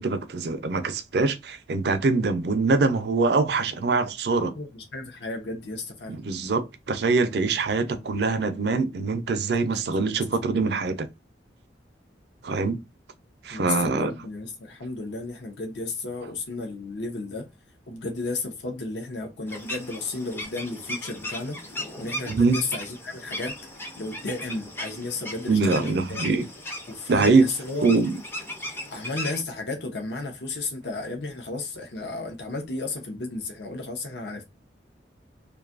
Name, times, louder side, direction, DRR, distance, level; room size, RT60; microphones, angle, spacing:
voice 1, 0.0-4.5 6.1-11.1 12.4-12.8 13.4-14.1 22.3-22.6 25.5-26.4 27.1-27.5 27.8-28.2, right 3 dB, 60° right, 0.4 m, -23 dB
voice 2, 4.5-6.2 9.7-9.8 13.5-17.5 17.9-21.6 22.0-23.6 24.0-26.3 26.9-27.9 28.9-34.5, left 3 dB, 65° left, 0.6 m, -33 dB
sound 1, 19.5-29.4, left 1 dB, 10° left, 0.4 m, -37 dB
2.5 x 2.3 x 2.4 m
head